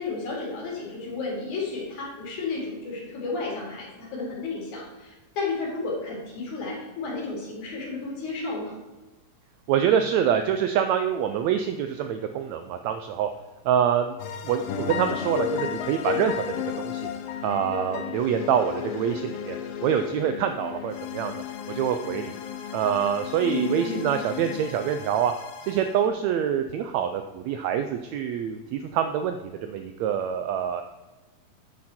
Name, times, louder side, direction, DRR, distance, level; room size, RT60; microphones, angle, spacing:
voice 1, 0.0-8.8 23.4-24.1, left 3 dB, 65° left, -3 dB, 3.9 m, -32 dB
voice 2, 9.7-13.3 13.6-14.2 14.4-16.4 16.8-17.0 17.4-19.6 19.8-21.3 21.7-22.3 22.7-25.3 25.7-30.8, right 8 dB, 90° right, 7 dB, 1.5 m, -25 dB
sound 1, 14.2-26.1, left 8 dB, 85° left, 1.4 m, -34 dB
9.7 x 6.5 x 4.2 m, 1.2 s
omnidirectional pair, 3.7 m